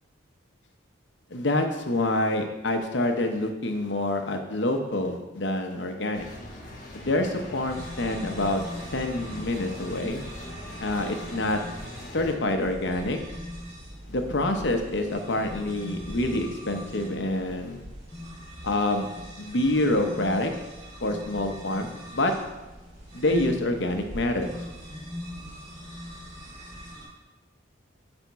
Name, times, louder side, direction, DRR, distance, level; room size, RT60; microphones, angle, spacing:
voice 1, 1.3-6.3 6.9-8.6 8.9-10.2 10.8-11.6 12.1-13.2 14.1-17.8 18.6-19.1 19.4-20.5 21.0-22.3 23.1-24.5, left 1 dB, 60° left, 5 dB, 0.7 m, -27 dB
sound 1, 6.1-12.4, left 1 dB, 45° left, 1.1 m, -42 dB
sound 2, 7.7-27.1, equal, 35° right, 2.3 m, -41 dB
9.1 x 3.5 x 4.1 m, 1.1 s
head